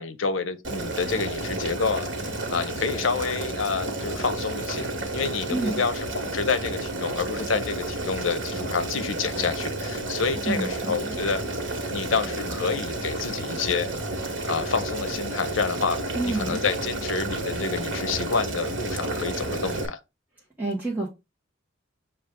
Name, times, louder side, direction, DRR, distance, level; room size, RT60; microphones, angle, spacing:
voice 1, 0.0-4.9 5.1-11.4 11.9-13.9 14.4-16.0 16.2-20.0, left 5 dB, 80° left, 0.7 m, -28 dB
Boiling, 0.6-19.9, right 2 dB, 75° right, 1.2 m, -31 dB
voice 2, 10.5-11.2 16.1-16.6 20.6-21.1, right 2 dB, 10° right, 1.0 m, -28 dB
6.2 x 2.4 x 3.6 m
head